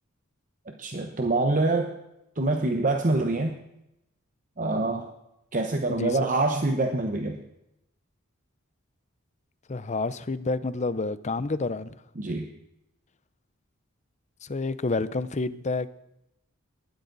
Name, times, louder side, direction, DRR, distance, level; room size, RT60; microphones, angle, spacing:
voice 1, 0.8-1.9 2.4-3.6 4.6-5.1 5.5-7.4 12.2-12.5, right 2 dB, 35° right, 4 dB, 1.0 m, -25 dB
voice 2, 5.9-6.3 9.7-11.9 14.4-15.9, left 3 dB, 35° left, 15 dB, 0.6 m, -29 dB
19.5 x 13.0 x 4.0 m, 0.86 s
head